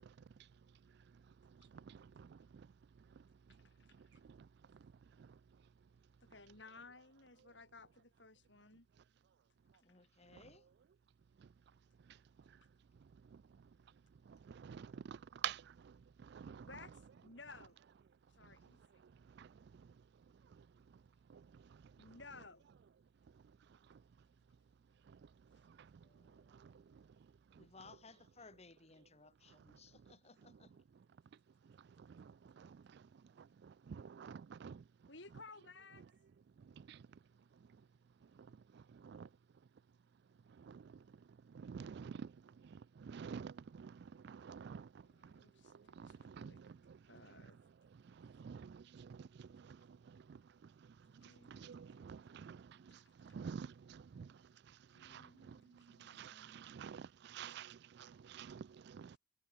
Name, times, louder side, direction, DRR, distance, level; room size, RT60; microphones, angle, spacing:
voice 1, 1.7-2.4 4.3-4.4 5.2-5.3 10.3-10.4 14.3-15.9 16.2-16.7 19.4-19.5 21.3-21.4 26.6-26.7 32.0-33.0 33.4-34.8 36.8-37.0 38.7-39.3 40.6-40.9 41.5-42.3 42.6-44.9 46.0-47.0 48.2-50.4 51.2-54.3 55.0-55.6 56.0-59.2, right 7 dB, 60° right, 0.4 m, -50 dB
voice 2, 3.6-4.2 6.2-8.9 16.6-17.8 18.3-18.8 22.0-22.6 35.1-36.1 45.0-46.6 47.1-47.6 51.2-52.6 53.1-53.2 54.9-56.6, left 3 dB, 70° left, 4.0 m, -58 dB
voice 3, 9.8-10.7 26.0-26.9 27.6-30.7, left 3 dB, 35° left, 2.2 m, -61 dB
head